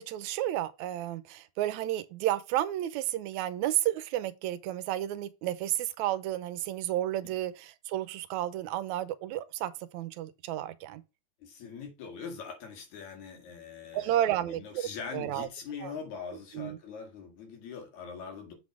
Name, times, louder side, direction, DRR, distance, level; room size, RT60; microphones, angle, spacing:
voice 1, 0.0-11.0 13.9-14.9 15.1-15.5 15.8-15.9 16.5-16.8, right 13 dB, 80° right, 1.9 m, -32 dB
voice 2, 11.4-18.5, left 6 dB, 75° left, 3.3 m, -42 dB
7.7 x 4.1 x 4.7 m
omnidirectional pair, 3.3 m